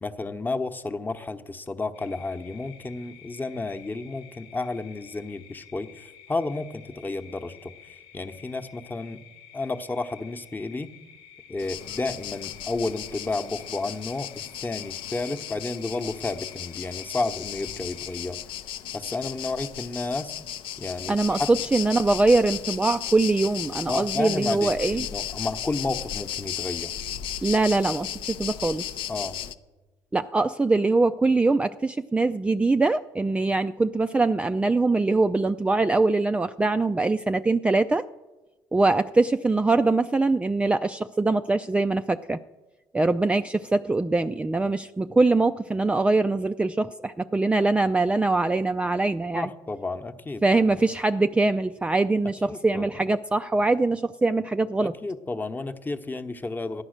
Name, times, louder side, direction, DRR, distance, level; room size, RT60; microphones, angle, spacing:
voice 1, 0.0-7.7 8.1-9.2 9.5-10.9 11.5-18.4 18.9-20.3 20.8-21.5 23.9-26.9 29.1-29.3 49.3-50.4 52.4-52.9 55.0-56.8, left 3 dB, 20° left, 6 dB, 1.0 m, -31 dB
sound 1, 1.9-18.3, left 9 dB, 90° left, 1.3 m, -51 dB
sound 2, 11.6-29.5, left 10 dB, 65° left, 0.6 m, -35 dB
voice 2, 21.1-25.0 27.4-29.0 30.1-38.0 38.7-42.4 42.9-49.5 50.4-54.9, right 3 dB, 10° right, 9 dB, 0.4 m, -23 dB
13.5 x 9.7 x 6.5 m, 1.2 s
supercardioid pair, 75°, 9 cm